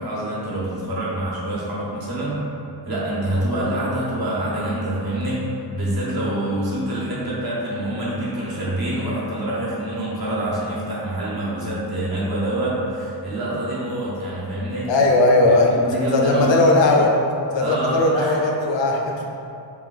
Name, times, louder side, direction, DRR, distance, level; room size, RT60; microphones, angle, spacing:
voice 1, 0.0-2.4 2.8-5.4 5.7-14.9 15.5-16.6 17.5-18.4, right 1 dB, 55° right, -7 dB, 1.1 m, -26 dB
voice 2, 14.9-15.7 16.1-17.1 17.5-19.3, left 2 dB, 90° left, 0 dB, 0.6 m, -18 dB
3.4 x 2.6 x 3.9 m, 2.7 s
wide cardioid pair, 145°, 43 cm